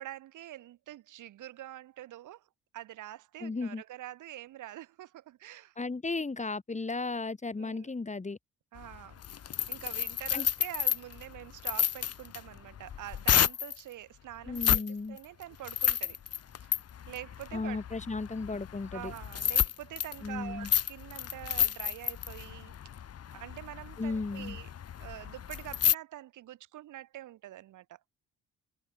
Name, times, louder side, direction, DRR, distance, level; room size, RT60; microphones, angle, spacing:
voice 1, 0.0-2.4 2.7-5.7 7.6-7.9 8.7-14.8 15.1-16.2 16.6-16.7 17.1-17.8 18.9-22.7 23.3-24.7 25.0-28.0, right 13 dB, 80° right, 6.6 m, -45 dB
voice 2, 3.4-3.8 5.8-8.4 10.3-10.5 14.5-15.2 17.5-19.1 20.2-20.7 24.0-24.6, left 3 dB, 25° left, 7.4 m, -35 dB
sound 1, 8.8-13.8 14.5-14.9 15.2-25.9, left 9 dB, 55° left, 1.8 m, -31 dB
cardioid pair, 90°, 30 cm